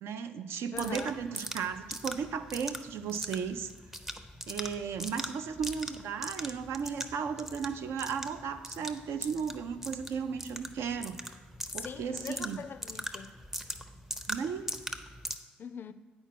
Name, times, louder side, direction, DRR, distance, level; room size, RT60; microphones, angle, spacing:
voice 1, 0.0-3.7 4.5-11.4 11.7-12.6 14.3-14.7, right 6 dB, 65° right, 0.4 m, -35 dB
voice 2, 0.7-1.2 11.8-13.3 15.6-15.9, left 7 dB, 45° left, 0.3 m, -42 dB
sound 1, 0.8-15.4, equal, 5° right, 0.6 m, -41 dB
8.9 x 4.2 x 4.5 m
hypercardioid pair, 50°, 5 cm